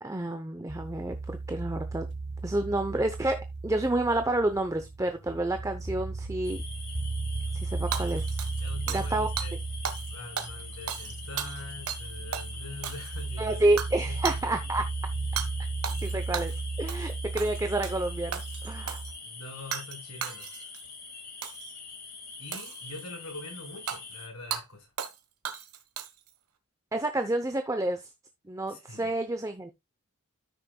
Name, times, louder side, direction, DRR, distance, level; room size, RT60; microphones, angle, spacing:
voice 1, 0.0-2.1 2.4-6.6 7.5-8.4 8.9-9.3 13.4-14.9 16.0-19.0 26.9-28.0 28.5-29.7, right 2 dB, 15° right, 0.7 m, -29 dB
sound 1, 0.7-19.1, right 3 dB, 50° right, 1.6 m, -35 dB
sound 2, 6.4-24.3, left 4 dB, 40° left, 2.1 m, -45 dB
Hammer / Shatter, 7.9-9.1 9.4-9.5 9.8-10.1 10.4-12.1 12.3-12.5 12.8-13.3 13.8-14.0 14.2-14.4 15.4-15.5 15.8-16.6 16.9-17.1 17.4-18.0 18.3-19.1 19.7-20.0 20.2-20.8 21.4-21.7 22.5-23.1 23.9-24.0 24.5-24.6 25.0-25.2 25.4-26.3, right 7 dB, 85° right, 1.4 m, -35 dB
voice 2, 8.6-9.6 10.1-13.6 14.0-14.4 16.0-16.2 19.2-20.7 22.4-24.9 28.7-29.1, left 2 dB, 70° left, 5.1 m, -44 dB
13.0 x 6.5 x 2.3 m
head